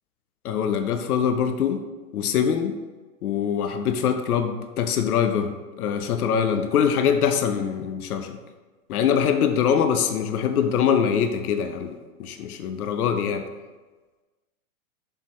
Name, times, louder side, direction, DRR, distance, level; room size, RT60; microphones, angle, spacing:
voice 1, 0.4-1.8 2.1-2.8 3.2-5.5 5.8-8.4 8.9-11.9 12.2-13.4, left 7 dB, 75° left, 7 dB, 0.8 m, -23 dB
6.8 x 5.6 x 3.1 m, 1.3 s
hypercardioid pair, 145°, 44 cm